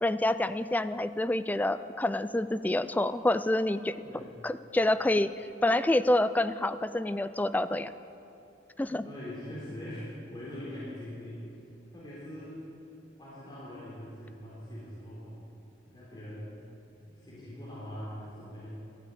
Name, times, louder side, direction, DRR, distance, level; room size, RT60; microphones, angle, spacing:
voice 1, 0.0-4.0 4.4-7.9 8.8-9.0, left 1 dB, 10° left, 13 dB, 0.3 m, -27 dB
voice 2, 8.9-11.5 11.9-12.6 13.2-15.5 15.9-16.5 17.0-18.7, left 1 dB, 25° left, -9 dB, 3.4 m, -42 dB
13.5 x 11.5 x 8.3 m, 2.8 s
head